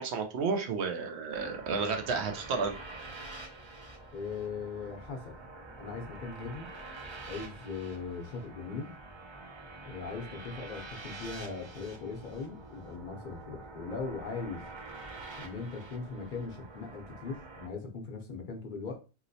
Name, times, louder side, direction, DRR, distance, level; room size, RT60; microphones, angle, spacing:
voice 1, 0.0-2.8, right 5 dB, 80° right, 0.9 m, -32 dB
sound 1, 1.3-17.7, right 3 dB, 35° right, 0.5 m, -47 dB
voice 2, 4.1-5.4 5.8-6.7 7.2-9.0 9.8-14.6 15.4-19.0, left 4 dB, 55° left, 0.7 m, -39 dB
3.0 x 2.8 x 2.6 m
omnidirectional pair, 1.1 m